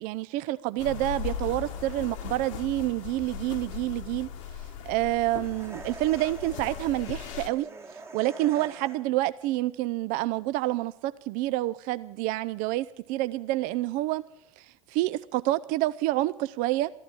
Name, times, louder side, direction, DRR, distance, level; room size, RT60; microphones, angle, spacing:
voice 1, 0.0-4.3 4.8-7.7 7.9-14.2 14.6-16.9, right 16 dB, 45° right, 0.5 m, -28 dB
sound 1, 0.8-7.5, left 8 dB, 60° left, 1.2 m, -38 dB
sound 2, 5.4-9.3, right 3 dB, 15° right, 1.3 m, -44 dB
14.0 x 11.5 x 8.4 m
figure-of-eight pair, 80°, 18 cm